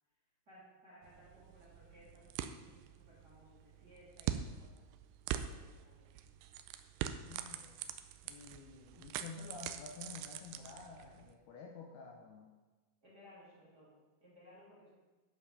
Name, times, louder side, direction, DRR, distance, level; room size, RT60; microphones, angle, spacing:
voice 1, 0.5-4.8 5.3-6.1 13.0-14.9, equal, 25° right, -8 dB, 3.1 m, -61 dB
sound 1, 1.0-11.3, right 10 dB, 80° right, 2.6 m, -44 dB
voice 2, 7.2-7.8 8.2-12.5, left 5 dB, 70° left, 0 dB, 2.7 m, -50 dB
11.5 x 5.6 x 6.8 m, 1.2 s
omnidirectional pair, 5.2 m